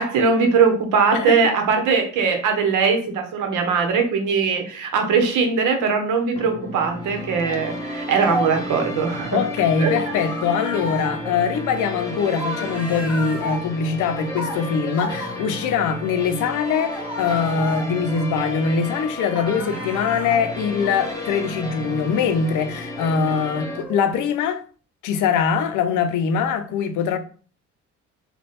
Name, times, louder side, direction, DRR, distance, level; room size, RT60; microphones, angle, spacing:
voice 1, 0.0-9.4 9.8-9.9, right 5 dB, 85° right, 0.9 m, -20 dB
sound 1, 6.4-23.8, left 2 dB, 10° left, 0.9 m, -32 dB
sound 2, 7.0-8.8 10.0-15.9 16.6-19.0 19.3-24.4, equal, 5° right, 1.4 m, -35 dB
voice 2, 9.3-24.6 25.0-27.2, left 6 dB, 85° left, 0.6 m, -22 dB
3.3 x 2.2 x 4.1 m
cardioid pair, 90°, 30 cm